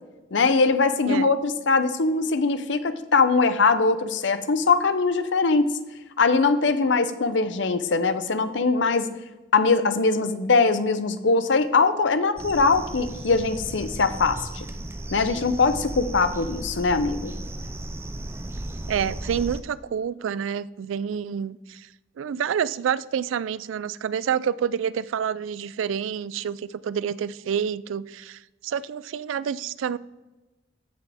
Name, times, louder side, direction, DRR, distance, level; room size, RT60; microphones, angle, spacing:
voice 1, 0.3-5.7 6.2-9.1 9.5-14.7 15.1-17.3, left 4 dB, 70° left, 12 dB, 0.6 m, -21 dB
sound 1, 12.4-19.6, right 1 dB, 15° right, 0.4 m, -35 dB
voice 2, 18.9-21.9 22.2-30.0, right 8 dB, 90° right, 19 dB, 0.3 m, -28 dB
14.0 x 6.0 x 3.5 m, 1.1 s
head